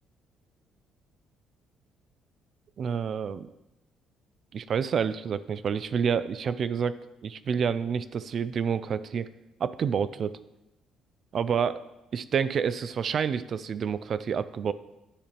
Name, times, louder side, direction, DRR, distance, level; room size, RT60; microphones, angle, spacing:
voice 1, 2.8-3.5 4.5-6.9 7.2-9.3 9.6-10.4 11.3-11.8 12.1-14.7, right 7 dB, 50° right, 15 dB, 0.3 m, -28 dB
9.8 x 3.4 x 4.4 m, 0.92 s
cardioid pair, 105°, 0 cm